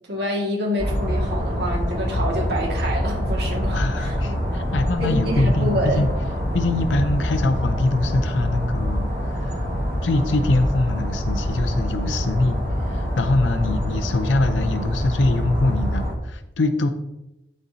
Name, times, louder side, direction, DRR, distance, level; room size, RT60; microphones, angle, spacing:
voice 1, 0.1-4.2 5.0-6.0, equal, 65° right, -2 dB, 1.9 m, -27 dB
sound 1, 0.8-16.1, equal, 45° right, 1.9 m, -25 dB
voice 2, 3.7-6.1 6.5-9.6 10.0-16.9, left 2 dB, 90° left, 7 dB, 0.6 m, -23 dB
12.0 x 4.3 x 2.7 m, 0.90 s
head